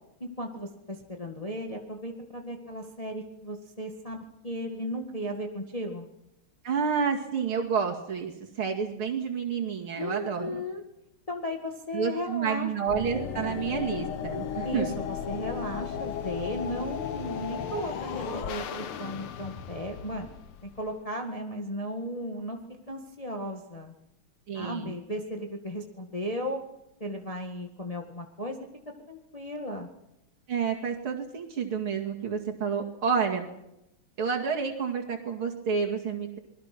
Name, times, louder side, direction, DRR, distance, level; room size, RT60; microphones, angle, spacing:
voice 1, 0.2-6.1 10.0-10.8 11.3-13.0 14.6-20.3 20.8-22.6 22.9-23.9 24.5-26.6 27.0-28.6 29.1-29.9, equal, 20° left, 2 dB, 1.8 m, -35 dB
voice 2, 6.6-8.3 8.6-10.6 11.9-14.9 24.5-24.9 30.5-33.5 34.2-36.4, right 6 dB, 75° right, 1 dB, 3.2 m, -29 dB
sound 1, 12.9-21.0, left 8 dB, 85° left, 2.1 m, -35 dB
27.5 x 21.0 x 6.1 m, 0.85 s
omnidirectional pair, 2.3 m